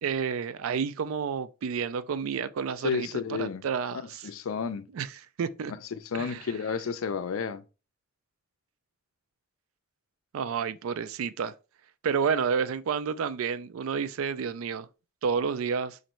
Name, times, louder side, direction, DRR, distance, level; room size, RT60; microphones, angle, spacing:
voice 1, 0.0-4.3 4.9-5.1 5.4-5.7 6.1-6.4 10.3-11.5 12.0-14.9 15.2-16.0, right 6 dB, 80° right, 0.4 m, -30 dB
voice 2, 2.8-3.7 3.9-4.9 5.9-7.6, left 6 dB, 80° left, 0.4 m, -31 dB
3.0 x 2.6 x 4.3 m
head